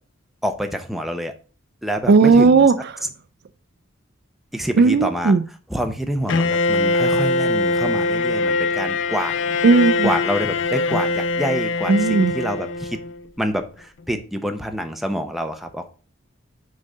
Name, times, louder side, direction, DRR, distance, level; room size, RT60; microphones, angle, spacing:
voice 1, 0.4-1.3 1.8-2.7 4.5-9.3 10.0-13.0 13.4-15.9, equal, ahead, 0.7 m, -27 dB
voice 2, 2.1-2.7 4.8-5.4 9.6-10.1 11.9-12.3, right 4 dB, 55° right, 0.4 m, -14 dB
Bowed string instrument, 6.3-13.2, left 3 dB, 65° left, 0.5 m, -22 dB
6.4 x 3.8 x 5.4 m
head